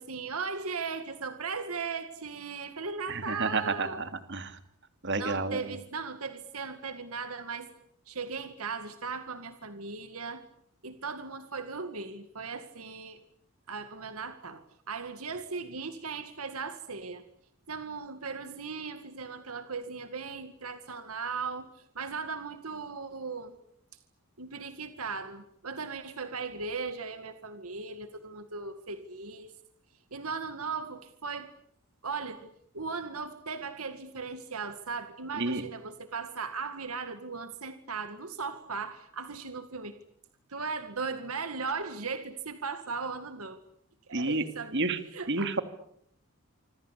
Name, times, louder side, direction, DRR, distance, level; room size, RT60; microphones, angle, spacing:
voice 1, 0.0-4.0 5.2-7.7 8.1-10.5 10.8-13.2 13.7-17.2 17.7-21.7 22.0-23.6 24.4-29.6 30.1-31.5 32.0-40.0 40.5-43.6 44.1-45.5, right 4 dB, 75° right, 9 dB, 2.1 m, -37 dB
voice 2, 3.1-4.6 5.0-5.6 35.4-35.6 44.1-44.4 44.7-45.0 45.3-45.6, right 3 dB, 55° right, 9 dB, 2.8 m, -30 dB
26.5 x 26.0 x 8.4 m, 0.71 s
head